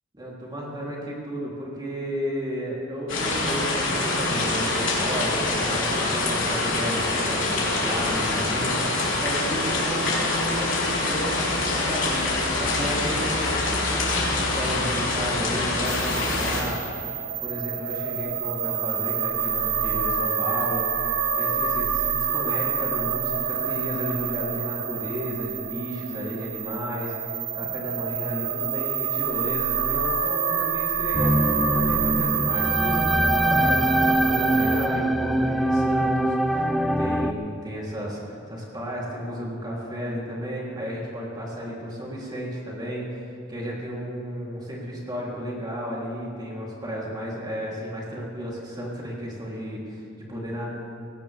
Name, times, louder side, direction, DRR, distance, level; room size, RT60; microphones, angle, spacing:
voice 1, 0.1-13.5 13.9-50.7, equal, 20° right, -4 dB, 3.4 m, -33 dB
sound 1, 3.1-16.6, left 2 dB, 70° left, 3.8 m, -25 dB
sound 2, 15.8-34.9, right 6 dB, 65° right, 1.2 m, -27 dB
sound 3, 31.1-37.3, right 1 dB, ahead, 0.5 m, -23 dB
18.5 x 17.5 x 3.5 m, 2.4 s
head